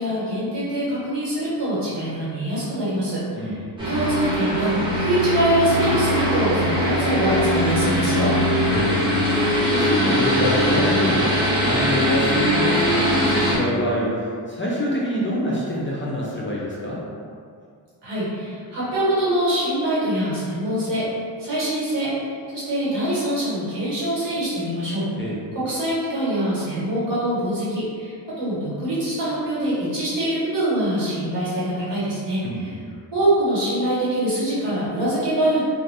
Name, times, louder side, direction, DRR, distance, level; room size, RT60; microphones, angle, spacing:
voice 1, 0.0-3.5 3.8-8.3 18.0-21.0 21.4-25.1 25.5-32.7 33.1-35.6, right 1 dB, 65° right, -9 dB, 1.4 m, -24 dB
sound 1, 3.8-13.6, equal, 10° right, 0.9 m, -21 dB
voice 2, 9.6-11.3 11.6-17.0 25.2-25.4 32.4-32.8, left 1 dB, 30° left, -6 dB, 0.4 m, -25 dB
2.6 x 2.5 x 3.3 m, 2.3 s
wide cardioid pair, 140°, 45 cm